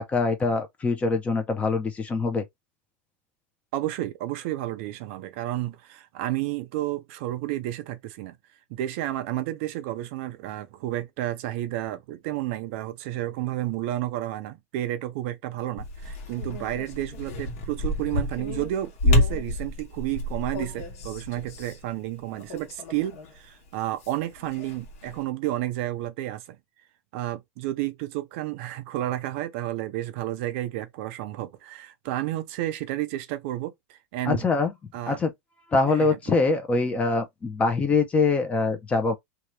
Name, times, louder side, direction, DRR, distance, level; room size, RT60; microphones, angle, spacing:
voice 1, 0.0-2.4 34.3-34.7 35.1-35.3 35.7-39.2, left 4 dB, 15° left, 0.7 m, -24 dB
voice 2, 3.7-8.4 8.7-26.6 27.1-34.4 34.9-35.2 35.9-36.3, right 14 dB, 55° right, 0.5 m, -31 dB
sound 1, 15.8-23.4 23.7-25.2, left 1 dB, 60° left, 1.3 m, -29 dB
2.8 x 2.4 x 3.1 m
supercardioid pair, 150°, 8 cm